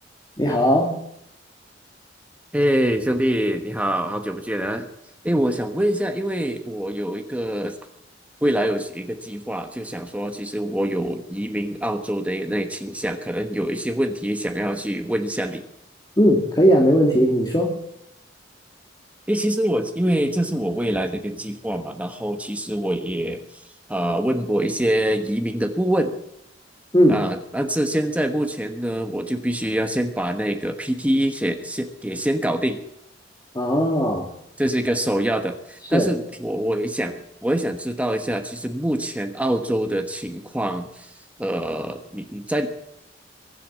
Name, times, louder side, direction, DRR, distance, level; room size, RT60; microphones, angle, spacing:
voice 1, 0.4-0.9 16.2-17.7 26.9-27.2 33.5-34.3 35.9-36.1, equal, 20° left, -1 dB, 2.5 m, -18 dB
voice 2, 2.5-4.9 5.2-7.8 8.4-15.6 19.3-23.4 23.9-26.1 27.1-32.8 34.6-41.1 41.4-42.7, right 1 dB, 10° right, 6 dB, 1.2 m, -25 dB
23.5 x 7.8 x 7.5 m, 0.77 s
head